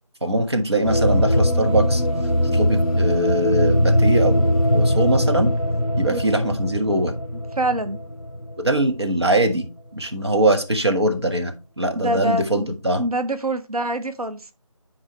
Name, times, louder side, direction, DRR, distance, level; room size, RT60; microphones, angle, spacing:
voice 1, 0.2-2.0 2.5-5.5 6.0-7.1 8.6-9.7 9.9-13.0, right 1 dB, 45° right, 1.3 m, -22 dB
sound 1, 0.8-9.0, equal, 15° right, 3.2 m, -21 dB
voice 2, 7.6-8.0 11.9-12.7 13.0-14.4, right 1 dB, 90° right, 0.8 m, -25 dB
10.5 x 4.7 x 3.1 m
figure-of-eight pair, 180°, 18 cm